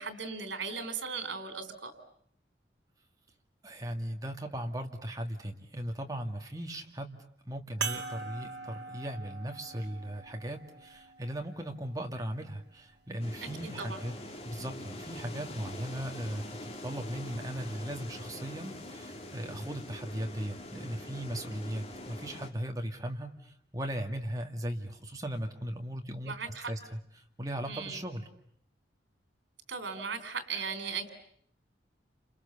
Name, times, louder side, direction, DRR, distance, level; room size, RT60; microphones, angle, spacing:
voice 1, 0.0-1.9 13.4-13.5 13.8-14.0 26.2-26.7 27.7-28.0 29.7-31.1, right 5 dB, 85° right, 9 dB, 3.5 m, -37 dB
voice 2, 3.6-7.2 7.4-14.1 14.4-26.4 26.7-27.0 27.4-28.3, right 1 dB, 20° right, 3 dB, 2.3 m, -38 dB
sound 1, 7.8-12.6 13.4-13.5 15.6-15.7, right 5 dB, 70° right, 2.1 m, -42 dB
sound 2, 13.2-22.5, left 1 dB, 35° left, 2.6 m, -44 dB
29.5 x 27.5 x 7.1 m, 0.66 s
head